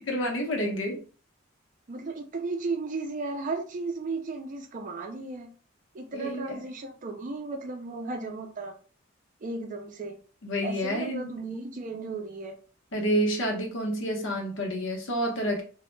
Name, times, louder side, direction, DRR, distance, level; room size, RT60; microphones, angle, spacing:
voice 1, 0.1-1.0 6.1-6.6 10.4-11.4 12.9-15.6, equal, 75° left, 0.7 m, -29 dB
voice 2, 1.9-5.5 5.9-8.7 9.4-10.2 10.6-12.6, right 3 dB, 40° right, 0.4 m, -35 dB
2.1 x 2.0 x 3.1 m
head